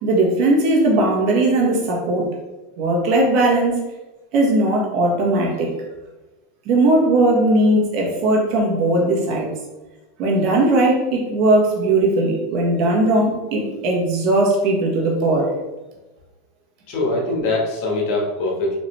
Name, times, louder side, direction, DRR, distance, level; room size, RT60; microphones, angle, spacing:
voice 1, 0.0-2.2 2.8-3.7 4.3-5.7 6.6-9.5 10.2-15.5, right 2 dB, 55° right, -2 dB, 1.4 m, -18 dB
voice 2, 16.9-18.8, left 2 dB, 60° left, -1 dB, 1.4 m, -22 dB
4.2 x 3.0 x 3.2 m, 1.1 s
hypercardioid pair, 105°, 0 cm